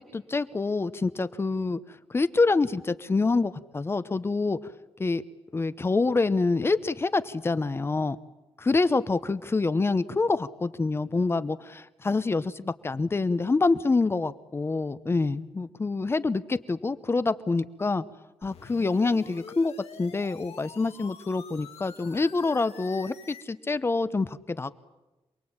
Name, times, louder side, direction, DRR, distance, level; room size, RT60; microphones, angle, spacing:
voice 1, 0.0-1.8 2.1-4.6 5.0-5.2 5.5-8.2 8.6-18.0 18.4-19.7 20.0-24.7, left 3 dB, 25° left, 14 dB, 0.9 m, -26 dB
sound 1, 18.4-23.4, left 6 dB, 80° left, 2.7 m, -47 dB
28.0 x 21.0 x 8.8 m, 1.0 s
wide cardioid pair, 165°, 10 cm